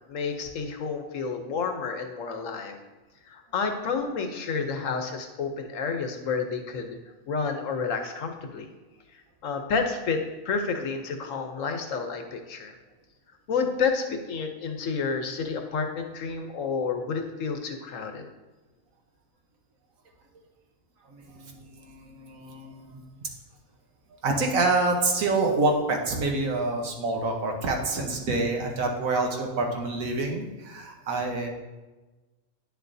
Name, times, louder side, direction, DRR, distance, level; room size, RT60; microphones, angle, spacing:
voice 1, 0.1-2.8 3.3-7.0 7.3-8.7 9.4-12.7 13.5-18.2, left 5 dB, 65° left, 5 dB, 1.1 m, -30 dB
voice 2, 21.8-23.0 24.2-31.5, right 3 dB, 70° right, 2 dB, 1.5 m, -27 dB
9.8 x 6.7 x 2.7 m, 1.2 s
omnidirectional pair, 1.5 m